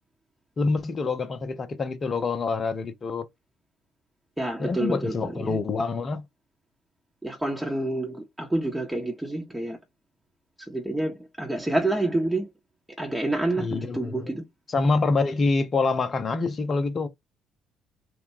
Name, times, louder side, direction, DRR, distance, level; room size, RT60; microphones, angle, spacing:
voice 1, 0.6-3.3 4.6-6.2 13.6-14.3 14.7-17.1, left 3 dB, 40° left, 0.7 m, -26 dB
voice 2, 4.4-5.6 7.2-9.8 10.7-12.5 13.0-14.4, right 2 dB, 10° right, 0.9 m, -28 dB
3.3 x 2.2 x 3.2 m
figure-of-eight pair, 50°, 0 cm